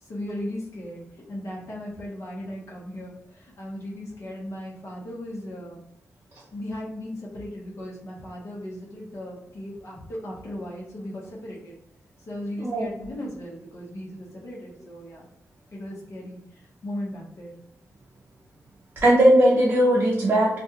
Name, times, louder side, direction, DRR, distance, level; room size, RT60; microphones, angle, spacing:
voice 1, 0.0-5.8 6.5-11.7 12.3-15.3 15.7-17.5, left 1 dB, 60° left, -4 dB, 1.0 m, -37 dB
voice 2, 19.0-20.6, right 1 dB, 40° right, -5 dB, 0.6 m, -18 dB
2.5 x 2.2 x 2.9 m, 0.77 s
wide cardioid pair, 100°, 5 cm